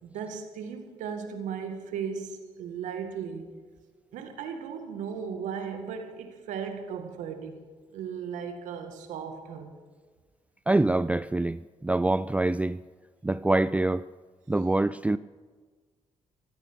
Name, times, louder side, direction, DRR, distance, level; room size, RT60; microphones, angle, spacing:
voice 1, 0.0-3.5 4.1-7.7 7.9-9.8, right 7 dB, 80° right, 2.0 m, -36 dB
voice 2, 10.7-12.8 13.2-14.0 14.5-15.2, right 2 dB, 10° right, 0.4 m, -25 dB
15.5 x 13.5 x 6.2 m
supercardioid pair, 55°, 13 cm